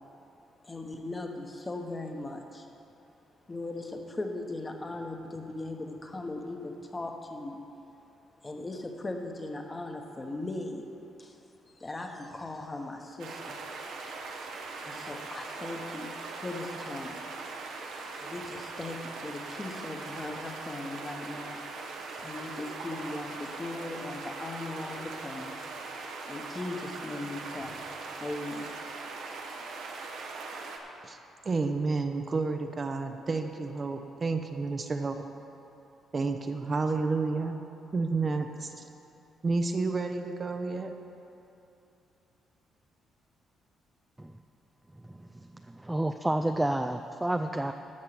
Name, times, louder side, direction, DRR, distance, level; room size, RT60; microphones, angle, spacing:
voice 1, 0.6-2.7 3.5-7.6 8.4-10.9 11.2-11.4 11.8-13.6 14.8-16.1 16.4-17.2 18.2-21.6 22.2-25.7 26.3-27.8 28.1-28.7 29.1-29.4, left 2 dB, 25° left, 3 dB, 1.2 m, -38 dB
sound 1, 13.2-30.8, right 3 dB, 80° right, 1.1 m, -40 dB
voice 2, 31.4-35.2 36.1-37.6 37.9-38.9 39.4-40.9, right 3 dB, 35° right, 6 dB, 0.7 m, -30 dB
voice 3, 45.8-47.7, right 1 dB, 10° right, 6 dB, 0.4 m, -29 dB
13.0 x 6.5 x 6.0 m, 2.8 s
cardioid pair, 90°, 0 cm